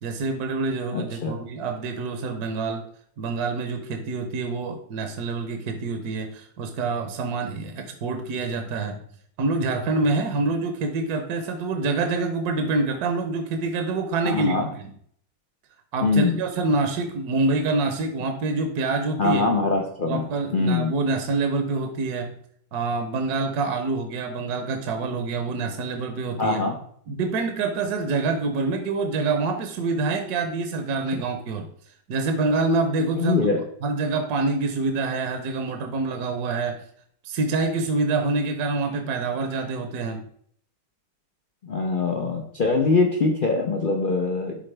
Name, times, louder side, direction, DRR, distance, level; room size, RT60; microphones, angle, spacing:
voice 1, 0.0-2.9 3.2-9.0 9.4-14.5 14.8-14.9 15.9-19.4 20.1-22.4 22.7-26.6 27.1-31.7 32.1-33.4 33.8-36.8 37.2-40.3, right 3 dB, 65° right, 5 dB, 1.2 m, -26 dB
voice 2, 0.9-1.4 14.2-14.7 16.0-16.4 19.2-20.3 20.5-20.9 26.4-26.7 33.2-33.6 41.6-44.6, left 3 dB, 85° left, 2 dB, 0.4 m, -23 dB
11.5 x 3.9 x 3.3 m, 0.63 s
omnidirectional pair, 1.9 m